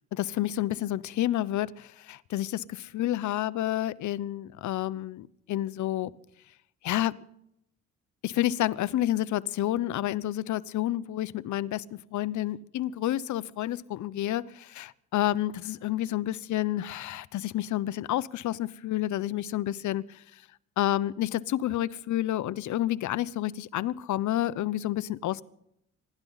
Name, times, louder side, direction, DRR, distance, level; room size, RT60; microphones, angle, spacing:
voice 1, 0.1-6.1 6.8-7.2 8.2-11.8 12.1-20.0 20.8-25.4, left 13 dB, 70° left, 18 dB, 0.8 m, -29 dB
26.5 x 12.5 x 4.0 m, 0.77 s
cardioid pair, 90°, 30 cm